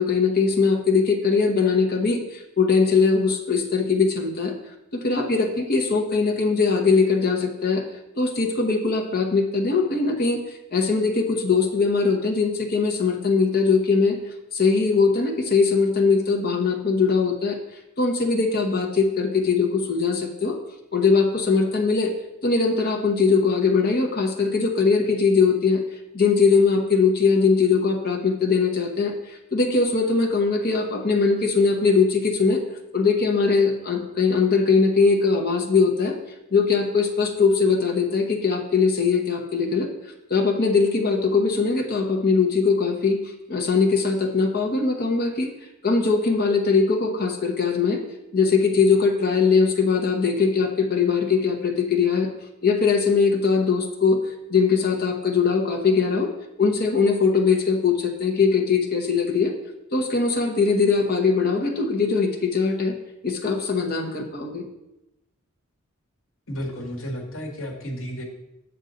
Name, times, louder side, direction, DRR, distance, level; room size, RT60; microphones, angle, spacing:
voice 1, 0.0-4.5 4.9-7.8 8.2-10.4 10.7-14.2 14.5-17.6 18.0-20.6 20.9-22.1 22.4-25.8 26.1-32.6 32.9-36.2 36.5-39.9 40.3-43.2 43.5-45.5 45.8-48.0 48.3-52.3 52.6-54.2 54.5-56.3 56.6-59.5 59.9-62.9 63.2-64.6, left 4 dB, 45° left, 1 dB, 1.1 m, -21 dB
voice 2, 66.5-68.2, equal, 70° left, 0 dB, 1.7 m, -32 dB
8.0 x 6.3 x 3.9 m, 0.92 s
head